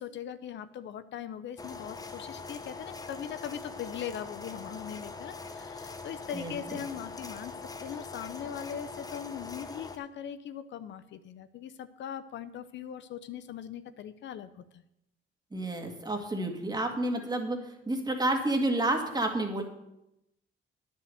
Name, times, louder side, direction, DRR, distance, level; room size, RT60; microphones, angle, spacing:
voice 1, 0.0-14.8, left 9 dB, 65° left, 13 dB, 0.6 m, -40 dB
sound 1, 1.6-10.0, left 4 dB, 20° left, 0.9 m, -42 dB
voice 2, 6.3-6.8 15.5-19.6, right 2 dB, 20° right, 3 dB, 2.0 m, -30 dB
9.6 x 6.4 x 7.8 m, 0.86 s
cardioid pair, 90°, 20 cm